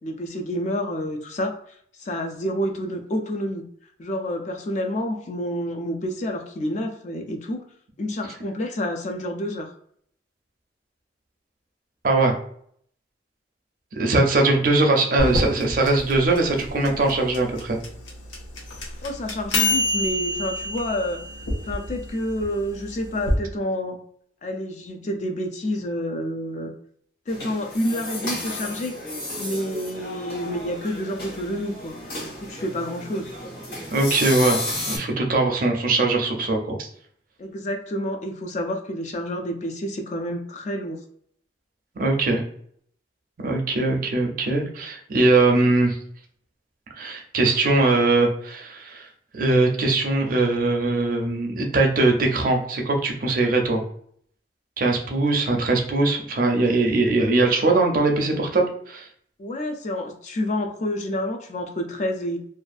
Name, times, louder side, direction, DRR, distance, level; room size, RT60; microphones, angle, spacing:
voice 1, 0.0-3.6 4.0-7.6 8.0-9.7 19.0-21.2 21.6-24.0 24.4-26.7 27.3-28.9 29.4-33.3 34.3-34.4 37.4-41.0 59.4-62.4, left 1 dB, 40° left, 4 dB, 0.3 m, -29 dB
voice 2, 12.0-12.4 14.0-17.8 33.9-36.9 42.0-42.4 43.4-46.0 47.0-49.1 49.3-53.8 54.8-59.1, right 2 dB, 45° right, 2 dB, 0.4 m, -21 dB
sound 1, 15.2-23.3, left 2 dB, 90° left, 0.6 m, -27 dB
sound 2, 27.3-35.0, left 2 dB, 55° left, 1.1 m, -33 dB
2.5 x 2.3 x 2.3 m, 0.63 s
head